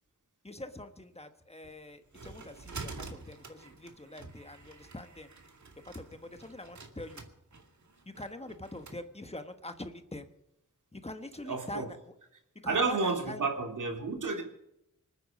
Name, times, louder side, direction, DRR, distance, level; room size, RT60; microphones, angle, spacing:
voice 1, 0.4-5.3 5.8-7.2 8.0-10.3 10.9-12.1 12.6-13.5, left 1 dB, 20° left, 8 dB, 1.3 m, -44 dB
sound 1, 1.6-9.0, right 4 dB, 65° right, 2.2 m, -48 dB
voice 2, 11.4-11.9 12.6-14.4, right 4 dB, 85° right, 1 dB, 3.4 m, -31 dB
25.5 x 9.5 x 5.3 m, 0.82 s
wide cardioid pair, 90°, 30 cm